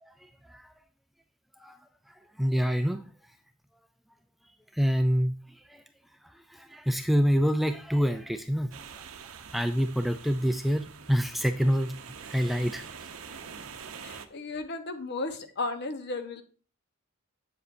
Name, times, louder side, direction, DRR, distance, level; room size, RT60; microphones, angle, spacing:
voice 1, 0.0-0.7 1.6-1.8 2.1-3.0 4.7-5.8 6.2-9.0 9.5-12.0 12.2-12.9, equal, ahead, 7 dB, 0.3 m, -27 dB
sound 1, 8.7-14.3, right 6 dB, 70° right, 0.7 m, -45 dB
voice 2, 14.0-16.4, left 3 dB, 50° left, 8 dB, 1.0 m, -34 dB
8.0 x 7.6 x 2.6 m, 0.38 s
head